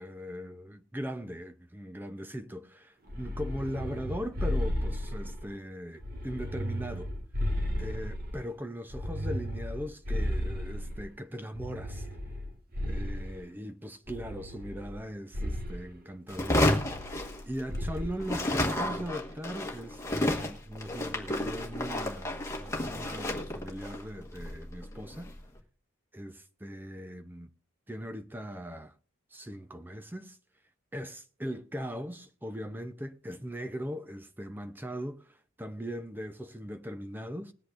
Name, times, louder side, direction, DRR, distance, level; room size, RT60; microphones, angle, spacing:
voice 1, 0.0-7.1 7.8-12.1 12.8-16.7 17.5-25.3 26.1-27.5 27.9-28.9 29.3-30.4 30.9-37.5, equal, 10° right, 0.6 m, -39 dB
sound 1, 3.1-5.5 6.0-8.4 8.9-11.1 11.6-13.4 14.1-15.0 15.3-15.8 16.7-17.4 17.7-18.2, left 1 dB, 45° right, 1.6 m, -34 dB
sound 2, 16.3-17.9 18.2-25.4, left 1 dB, 15° left, 1.4 m, -31 dB
20.5 x 8.4 x 2.5 m
head